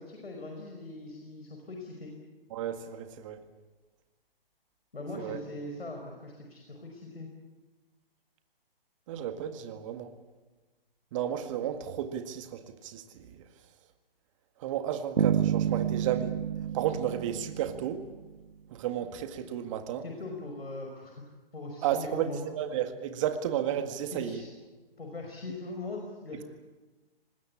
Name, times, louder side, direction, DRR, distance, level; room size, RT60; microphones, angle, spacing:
voice 1, 0.0-2.1 4.9-7.3 19.0-19.1 20.0-21.2 21.5-22.5 24.1-24.5 25.0-26.4, left 2 dB, 80° left, 5.3 m, -41 dB
voice 2, 2.5-3.4 5.2-5.4 9.1-10.1 11.1-13.3 14.6-16.4 16.7-18.0 18.7-20.0 21.8-24.4, right 10 dB, 35° right, 2.0 m, -33 dB
sound 1, 15.2-18.2, right 8 dB, 75° right, 1.6 m, -29 dB
24.5 x 20.5 x 8.5 m
figure-of-eight pair, 140°, 30 cm